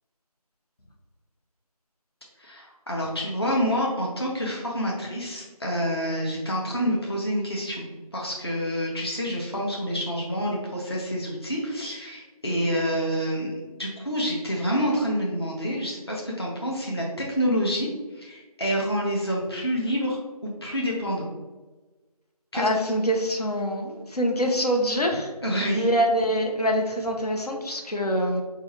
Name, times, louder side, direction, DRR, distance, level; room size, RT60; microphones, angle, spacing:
voice 1, 2.4-17.9 18.1-21.3 22.5-22.7 25.4-25.9, equal, 40° left, -3 dB, 0.7 m, -28 dB
voice 2, 22.5-25.3 25.8-28.4, equal, 75° left, 1 dB, 0.7 m, -25 dB
4.9 x 2.4 x 2.9 m, 1.2 s
figure-of-eight pair, 175°, 20 cm